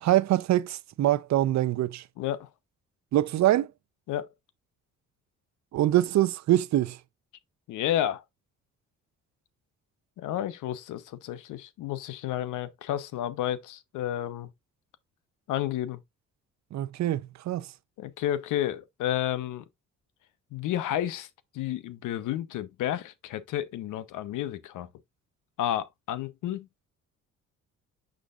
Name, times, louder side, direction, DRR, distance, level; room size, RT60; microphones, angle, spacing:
voice 1, 0.0-2.0 3.1-3.7 5.7-7.0 16.7-17.7, right 14 dB, 65° right, 0.6 m, -24 dB
voice 2, 2.2-2.5 4.1-4.3 7.7-8.2 10.2-14.5 15.5-16.0 18.0-19.6 20.5-21.3 21.5-24.9 25.6-26.7, left 12 dB, 85° left, 0.8 m, -31 dB
6.4 x 6.3 x 2.4 m
cardioid pair, 90°, 30 cm